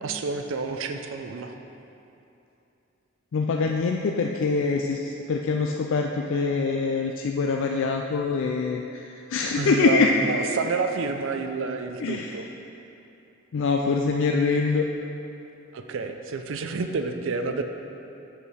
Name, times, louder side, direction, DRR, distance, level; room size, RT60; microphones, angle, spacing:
voice 1, 0.0-1.5 9.6-12.5 15.7-17.6, right 4 dB, 65° right, 6 dB, 0.5 m, -29 dB
voice 2, 3.3-10.1 12.0-12.4 13.5-14.8, left 4 dB, 60° left, 2 dB, 0.4 m, -24 dB
7.9 x 4.8 x 4.9 m, 2.8 s
head